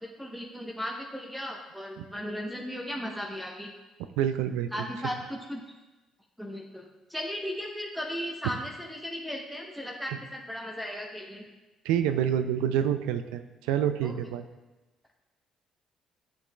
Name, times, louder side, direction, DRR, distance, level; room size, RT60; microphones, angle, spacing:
voice 1, 0.0-3.7 4.7-5.6 6.4-11.5 14.0-14.1, equal, ahead, 0 dB, 0.9 m, -36 dB
voice 2, 4.2-4.7 10.1-10.2 11.8-14.4, right 9 dB, 75° right, 10 dB, 0.3 m, -27 dB
9.8 x 6.1 x 2.3 m, 1.1 s
hypercardioid pair, 50°, 0 cm